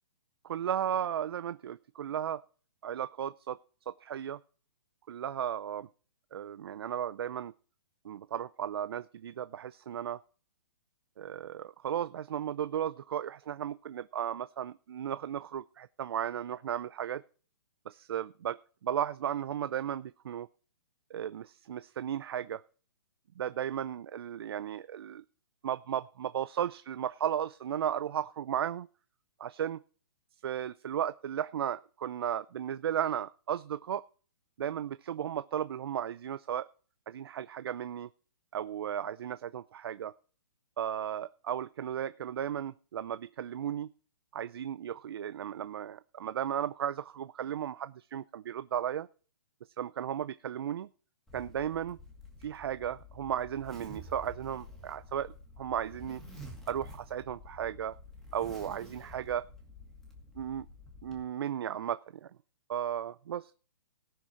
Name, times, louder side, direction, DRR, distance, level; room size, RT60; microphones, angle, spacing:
voice 1, 0.4-2.4 2.8-3.6 3.9-4.4 5.1-5.9 6.3-7.5 8.0-10.2 11.2-17.2 17.9-20.5 21.1-22.6 23.4-25.2 25.6-28.9 29.4-29.8 30.4-34.0 34.6-36.7 37.1-38.1 38.5-40.1 40.8-43.9 44.3-49.1 49.8-50.9 51.3-52.0 52.4-56.2 56.7-58.0 58.3-59.5 60.4-60.7 61.0-62.3 62.7-63.5, right 9 dB, 60° right, 14 dB, 0.5 m, -35 dB
Zipper (clothing), 51.3-61.2, left 1 dB, 5° left, 2.2 m, -50 dB
18.5 x 6.4 x 4.4 m, 0.41 s
hypercardioid pair, 160°, 14 cm